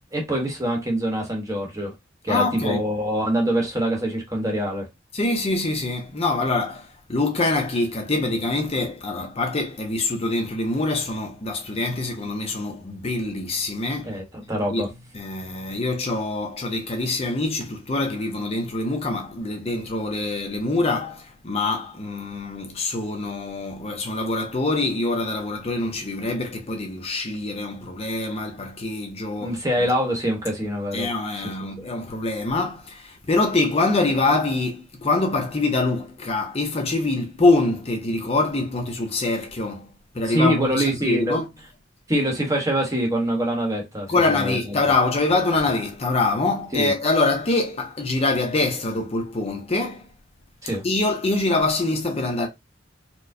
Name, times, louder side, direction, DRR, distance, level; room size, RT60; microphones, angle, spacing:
voice 1, 0.1-1.9 2.2-4.9 14.0-14.9 29.4-31.1 31.4-31.9 40.2-41.4 42.1-44.7 46.7-46.9 50.6-50.8, equal, 20° right, 1.0 m, -24 dB
voice 2, 2.3-2.8 5.1-14.2 14.7-14.8 15.1-29.9 30.9-39.9 40.1-41.5 44.1-50.1 50.8-52.5, left 2 dB, 30° left, 0.6 m, -24 dB
4.3 x 2.1 x 2.6 m
head